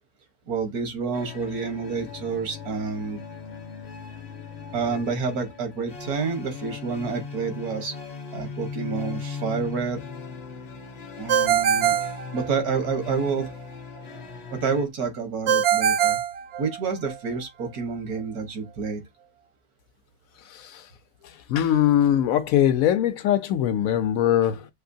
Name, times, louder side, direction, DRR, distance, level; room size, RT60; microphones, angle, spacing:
voice 1, 0.5-3.2 4.7-7.9 8.3-10.0 11.2-12.0 12.3-13.5 14.5-16.2 16.6-19.0, right 5 dB, 80° right, 1.7 m, -29 dB
sound 1, 1.1-14.9, left 5 dB, 40° left, 0.6 m, -38 dB
Ringtone, 11.3-13.0 15.5-17.1, right 8 dB, 60° right, 0.8 m, -23 dB
voice 2, 21.5-24.7, left 11 dB, 75° left, 1.0 m, -21 dB
6.5 x 2.7 x 2.7 m
omnidirectional pair, 1.6 m